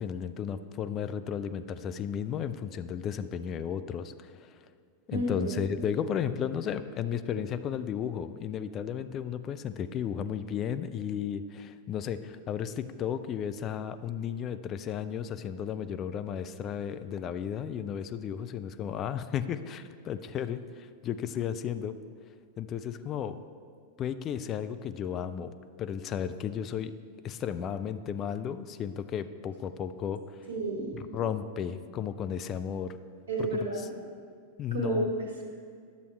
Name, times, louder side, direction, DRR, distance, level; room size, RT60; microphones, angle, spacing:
voice 1, 0.0-4.4 5.1-22.0 22.6-23.4 24.0-25.5 25.8-26.9 27.2-30.4 30.9-33.0 33.4-33.5 34.6-35.1, left 8 dB, 30° left, 11 dB, 0.3 m, -34 dB
voice 2, 5.1-5.5 30.5-31.0 33.3-33.9 34.7-35.3, right 2 dB, 70° right, 0 dB, 1.5 m, -31 dB
10.5 x 6.8 x 3.2 m, 2.1 s
figure-of-eight pair, 90°, 0 cm